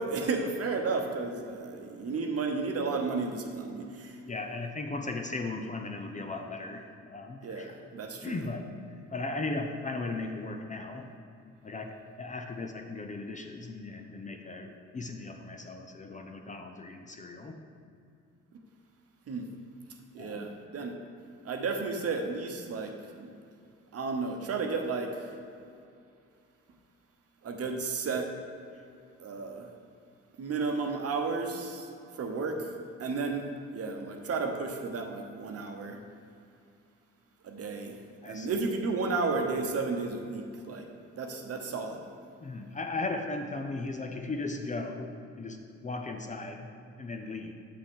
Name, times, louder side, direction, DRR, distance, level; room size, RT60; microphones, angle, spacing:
voice 1, 0.0-4.2 7.4-8.5 19.3-19.5 20.1-21.0 21.4-23.3 23.9-25.3 27.4-28.3 29.2-29.7 30.4-36.0 37.4-38.0 38.2-40.9 41.2-42.0, right 4 dB, 50° right, 3 dB, 1.0 m, -33 dB
voice 2, 4.3-7.7 8.2-8.7 9.1-11.1 11.6-17.6 20.2-20.5 38.2-38.5 42.4-46.7 47.0-47.5, left 3 dB, 25° left, 4 dB, 0.6 m, -37 dB
7.4 x 6.5 x 3.7 m, 2.5 s
cardioid pair, 90°, 30 cm